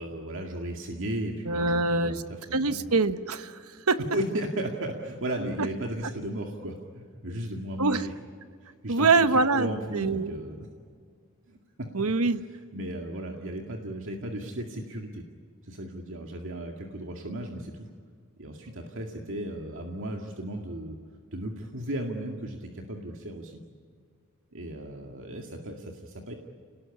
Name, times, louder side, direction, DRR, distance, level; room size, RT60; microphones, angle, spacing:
voice 1, 0.0-2.8 4.1-8.1 8.6-10.7 11.5-12.1 12.7-15.2 15.6-17.9 18.4-21.0 21.3-23.6 24.5-26.3, right 1 dB, 60° right, 2 dB, 2.1 m, -35 dB
voice 2, 1.5-2.2 2.5-3.6 3.9-4.0 5.6-5.7 7.8-8.1 8.9-10.4 11.9-12.4, right 3 dB, 90° right, 11 dB, 1.2 m, -24 dB
29.5 x 19.5 x 9.9 m, 2.1 s
head